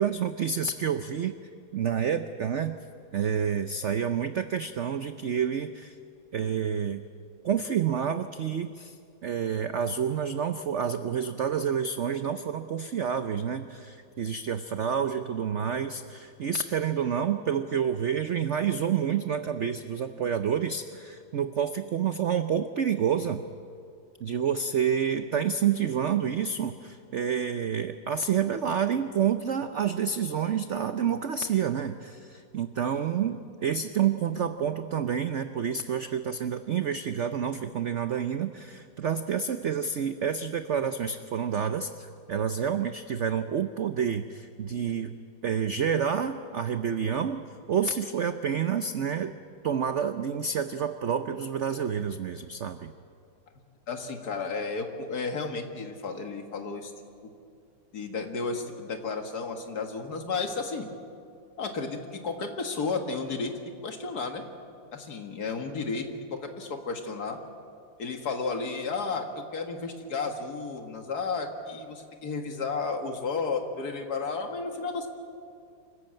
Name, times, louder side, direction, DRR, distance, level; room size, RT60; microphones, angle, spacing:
voice 1, 0.0-1.4 1.7-2.8 3.1-6.0 6.3-7.0 7.4-9.0 9.2-23.4 24.2-45.2 45.4-47.4 47.7-49.3 49.6-52.9, right 7 dB, 90° right, 9 dB, 0.6 m, -28 dB
voice 2, 53.9-56.9 57.9-60.9 61.6-63.5 63.8-64.4 64.9-67.4 68.0-75.1, left 4 dB, 50° left, 5 dB, 2.1 m, -33 dB
25.5 x 15.0 x 8.9 m, 2.4 s
omnidirectional pair, 2.1 m